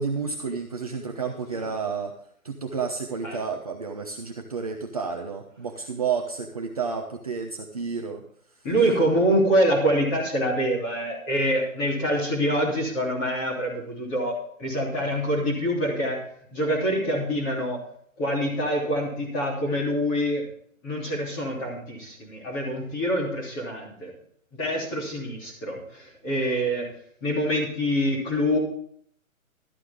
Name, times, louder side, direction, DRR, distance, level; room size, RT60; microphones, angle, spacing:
voice 1, 0.0-2.2 2.4-8.2, right 5 dB, 25° right, 2 dB, 0.8 m, -31 dB
voice 2, 8.6-16.2 16.5-17.8 18.2-20.4 20.8-24.1 24.5-26.9 27.2-28.6, equal, 15° left, -2 dB, 3.1 m, -25 dB
13.5 x 13.0 x 3.6 m, 0.63 s
hypercardioid pair, 175°, 42 cm